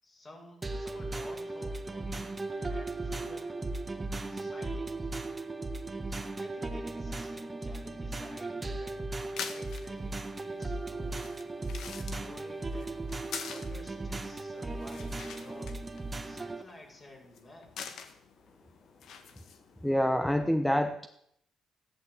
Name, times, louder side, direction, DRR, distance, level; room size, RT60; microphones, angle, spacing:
voice 1, 0.0-3.6 4.3-5.1 6.1-11.2 12.0-13.0 13.4-15.8 16.2-18.0, left 2 dB, 35° left, 0 dB, 6.9 m, -52 dB
sound 1, 0.6-16.6, right 2 dB, 20° right, 1.5 m, -37 dB
sound 2, 9.1-19.9, left 6 dB, 70° left, 1.9 m, -46 dB
voice 2, 19.8-21.1, equal, 5° left, 9 dB, 0.9 m, -27 dB
15.0 x 12.0 x 8.1 m, 0.74 s
cardioid pair, 90°, 0 cm